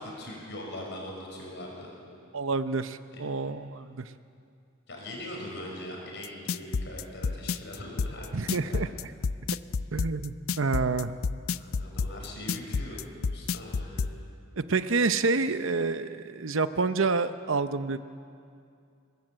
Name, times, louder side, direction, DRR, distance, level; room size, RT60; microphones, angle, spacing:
voice 1, 0.0-1.9 3.1-3.2 4.9-8.8 11.6-13.0 13.3-14.1, left 1 dB, 55° left, -1 dB, 6.6 m, -41 dB
voice 2, 2.3-4.1 8.3-8.9 9.9-11.1 14.6-18.0, right 4 dB, 65° right, 11 dB, 0.8 m, -28 dB
sound 1, 6.2-14.1, left 5 dB, 75° left, 0.5 m, -29 dB
23.0 x 20.5 x 8.0 m, 2.4 s
head